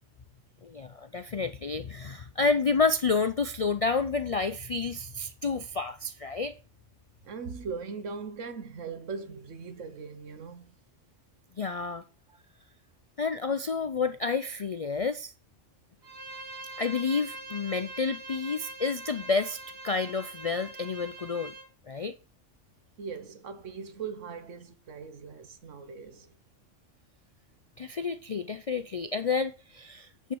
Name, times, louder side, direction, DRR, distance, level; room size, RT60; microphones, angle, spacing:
voice 1, 0.6-6.5 11.6-12.0 13.2-15.3 16.8-21.5 21.9-22.2 27.8-30.3, left 4 dB, 60° left, 0.3 m, -30 dB
voice 2, 7.2-10.8 12.3-12.4 23.0-26.3, right 5 dB, 75° right, 1.5 m, -40 dB
Bowed string instrument, 16.0-21.7, right 2 dB, 55° right, 2.6 m, -43 dB
9.3 x 5.8 x 6.9 m
omnidirectional pair, 1.3 m